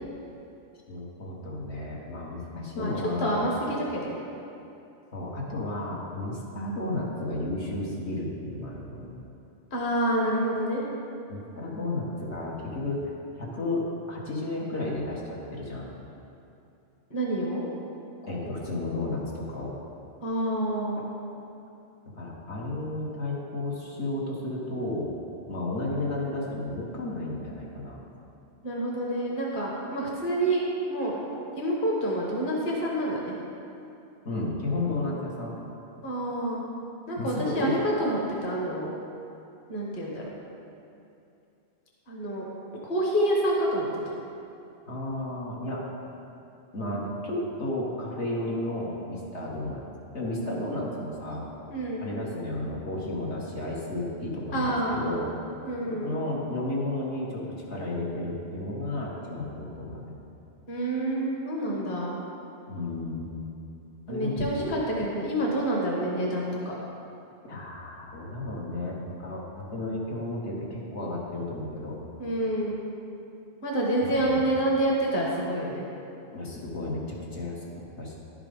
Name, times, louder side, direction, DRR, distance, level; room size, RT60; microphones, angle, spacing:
voice 1, 0.9-3.4 5.1-9.1 11.3-13.0 13.4-15.9 18.3-19.7 22.2-25.1 25.5-28.0 34.2-35.5 37.2-37.8 44.9-45.8 46.7-49.8 50.1-51.5 52.0-55.3 56.0-60.1 62.7-63.3 64.1-64.7 67.4-71.9 74.0-74.4 76.3-77.6 78.0-78.2, left 2 dB, 75° left, -5 dB, 1.7 m, -33 dB
voice 2, 3.2-4.2 9.7-10.8 17.1-17.6 20.2-21.0 28.6-31.2 31.6-33.3 36.0-36.6 37.1-38.9 39.7-40.3 42.1-42.5 42.8-44.0 51.7-52.0 54.5-55.0 55.6-56.1 60.7-62.2 64.1-66.8 72.2-72.8 73.6-75.8, right 1 dB, 45° left, -3 dB, 1.5 m, -28 dB
11.0 x 5.9 x 5.2 m, 2.7 s
omnidirectional pair, 1.2 m